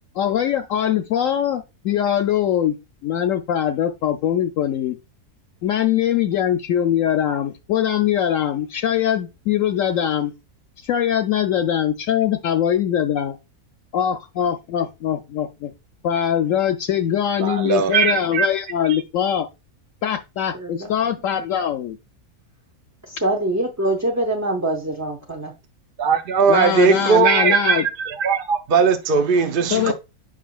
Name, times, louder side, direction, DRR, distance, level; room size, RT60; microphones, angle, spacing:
voice 1, 0.2-2.8 3.0-5.0 5.6-10.3 10.8-13.4 13.9-15.7 16.0-19.5 20.0-22.0 26.5-27.9 29.7-29.9, left 10 dB, 70° left, 0.9 m, -22 dB
voice 2, 17.4-18.5 26.0-29.9, right 5 dB, 50° right, 0.7 m, -18 dB
voice 3, 20.5-20.9 23.1-25.5, right 1 dB, 20° right, 0.4 m, -24 dB
7.4 x 5.4 x 2.3 m
omnidirectional pair, 1.5 m